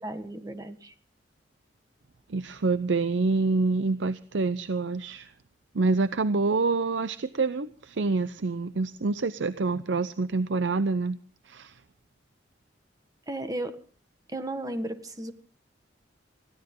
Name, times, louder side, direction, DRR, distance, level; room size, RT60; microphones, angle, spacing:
voice 1, 0.0-0.9 13.3-13.8 14.3-15.3, right 1 dB, 20° right, 9 dB, 1.5 m, -34 dB
voice 2, 2.3-5.3 5.7-11.2 11.5-11.8, right 3 dB, 85° right, 14 dB, 0.6 m, -27 dB
21.0 x 16.0 x 3.8 m, 0.40 s
head